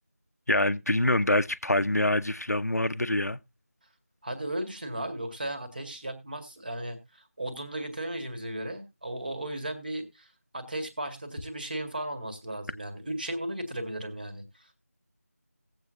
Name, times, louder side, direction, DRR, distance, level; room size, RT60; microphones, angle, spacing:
voice 1, 0.5-3.4, left 1 dB, 85° left, 0.8 m, -25 dB
voice 2, 4.2-10.3 10.5-14.8, right 1 dB, 35° right, 1.9 m, -36 dB
18.5 x 7.8 x 2.6 m
figure-of-eight pair, 170°, 8 cm